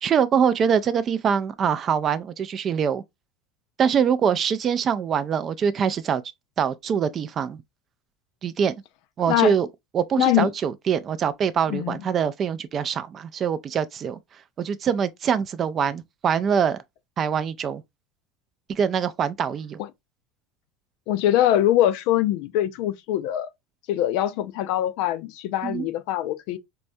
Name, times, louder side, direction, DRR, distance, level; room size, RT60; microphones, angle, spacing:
voice 1, 0.0-3.0 3.8-6.2 6.6-7.6 8.4-8.7 9.2-9.7 9.9-14.2 14.6-16.8 17.2-17.8 18.7-19.8 25.6-25.9, right 7 dB, 30° right, 0.3 m, -24 dB
voice 2, 10.2-10.5 11.7-12.0 19.8-19.9 21.1-23.5 23.9-26.6, left 12 dB, 65° left, 0.4 m, -23 dB
4.5 x 2.1 x 2.6 m
supercardioid pair, 145°, 0 cm